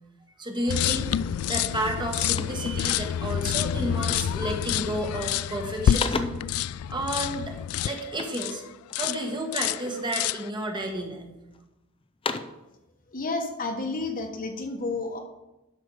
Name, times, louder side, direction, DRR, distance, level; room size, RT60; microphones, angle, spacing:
voice 1, 0.4-6.3 6.9-7.6 7.8-8.6 8.9-11.3, right 1 dB, 20° right, 3 dB, 1.3 m, -31 dB
sound 1, 0.7-8.6 8.9-9.2 9.5-10.5, left 10 dB, 90° left, 0.3 m, -28 dB
sound 2, 1.4-1.6 1.9-3.4 4.1-4.4 4.7-5.2 5.6-6.6 8.1-9.3 9.8-10.4 11.0-11.6 12.0-12.7, left 4 dB, 25° left, 0.5 m, -36 dB
voice 2, 13.1-15.2, left 3 dB, 40° left, 4 dB, 1.2 m, -31 dB
11.0 x 6.5 x 4.8 m, 0.99 s
head